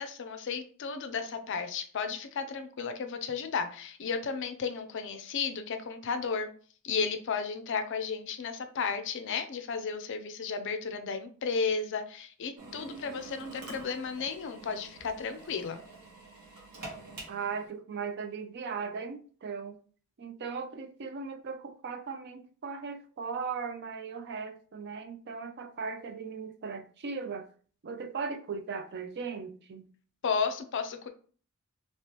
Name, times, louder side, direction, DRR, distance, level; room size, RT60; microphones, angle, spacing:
voice 1, 0.0-6.5 6.8-15.8 30.2-31.1, left 5 dB, 55° left, 0.4 m, -33 dB
Drill, 12.6-17.7, right 2 dB, 85° right, 1.3 m, -47 dB
voice 2, 17.3-19.8 20.2-27.5 27.8-29.9, right 5 dB, 50° right, 0.4 m, -38 dB
3.2 x 2.9 x 2.9 m
head